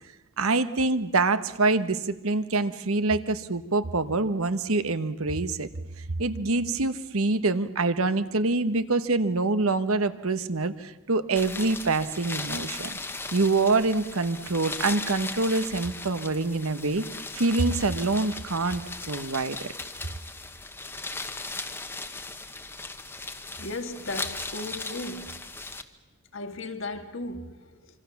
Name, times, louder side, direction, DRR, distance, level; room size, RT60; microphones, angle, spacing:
voice 1, 0.4-5.7 6.2-13.0 13.3-17.0 17.3-19.7, right 3 dB, 75° right, 1.2 m, -25 dB
sound 1, 11.4-25.8, left 3 dB, 10° left, 1.1 m, -37 dB
voice 2, 23.6-25.4 26.3-28.0, left 2 dB, 60° left, 2.0 m, -36 dB
26.5 x 25.0 x 7.2 m
head